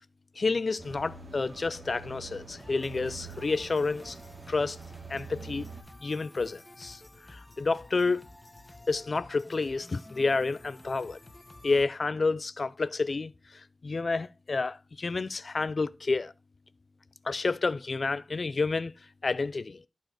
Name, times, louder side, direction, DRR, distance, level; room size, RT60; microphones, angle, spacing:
voice 1, 0.4-4.2 4.5-4.8 5.1-5.7 6.0-7.0 7.3-8.2 8.9-11.2 11.6-16.3 17.2-18.9 19.2-19.8, left 3 dB, 55° left, 0.6 m, -29 dB
sound 1, 0.8-5.8, right 4 dB, 50° right, 2.7 m, -46 dB
sound 2, 2.6-11.9, left 2 dB, 20° left, 1.7 m, -52 dB
12.0 x 4.6 x 6.0 m
wide cardioid pair, 95°, 0 cm